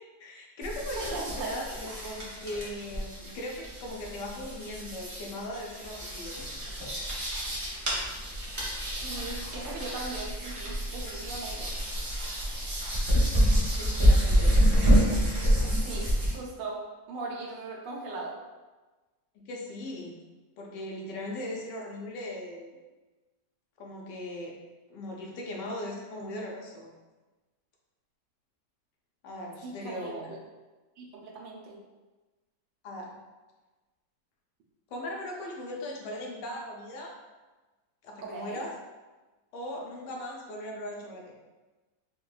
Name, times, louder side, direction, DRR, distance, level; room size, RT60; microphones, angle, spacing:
voice 1, 0.2-6.4 13.8-14.6 19.3-20.2 20.6-22.8 23.8-24.5 24.9-26.9 29.2-30.3 32.8-33.2 34.9-37.2 38.0-38.7 39.5-41.4, left 1 dB, 80° left, -1 dB, 1.3 m, -39 dB
sound 1, 0.6-16.3, equal, 50° right, 0.3 m, -27 dB
voice 2, 1.0-1.8 9.0-11.7 15.8-16.1 16.3-16.8 17.1-18.3 29.6-30.3 31.0-31.8 38.2-38.6, right 3 dB, 85° right, -2 dB, 1.3 m, -39 dB
4.4 x 2.2 x 2.3 m, 1.2 s
omnidirectional pair, 1.9 m